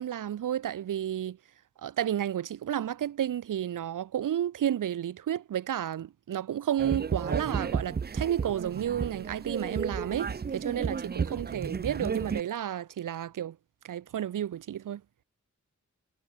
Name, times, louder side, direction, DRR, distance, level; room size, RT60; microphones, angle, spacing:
voice 1, 0.0-1.4 1.8-13.6 13.8-15.0, right 10 dB, 90° right, 0.8 m, -31 dB
sound 1, 6.8-12.4, right 6 dB, 30° right, 0.6 m, -33 dB
wide cardioid pair, 100°, 31 cm